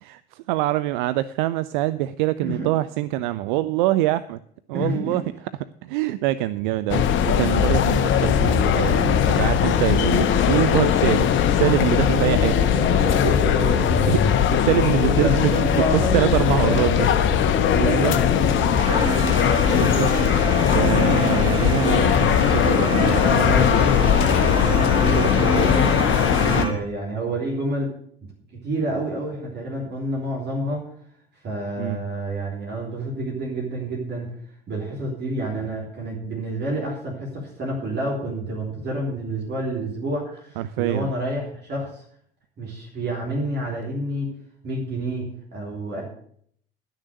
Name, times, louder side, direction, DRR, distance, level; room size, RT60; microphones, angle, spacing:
voice 1, 0.0-4.4 4.7-5.2 5.6-12.5 13.7-14.2 14.6-15.5 15.9-17.1 17.7-18.2 19.8-20.2 20.7-23.7 26.5-26.8 31.8-32.0 40.6-41.1, right 15 dB, 55° right, 15 dB, 0.4 m, -24 dB
voice 2, 4.7-5.2 12.1-14.2 15.1-19.1 23.1-26.0 26.4-27.9 28.5-30.9 31.4-34.3 34.7-42.0 42.6-44.3 44.6-46.0, right 1 dB, 35° right, -2 dB, 3.4 m, -29 dB
sound 1, 6.9-26.6, left 9 dB, 40° left, 0.9 m, -19 dB
sound 2, 18.8-26.7, right 1 dB, 15° right, 2.1 m, -28 dB
11.0 x 6.5 x 7.7 m, 0.63 s
figure-of-eight pair, 65°, 29 cm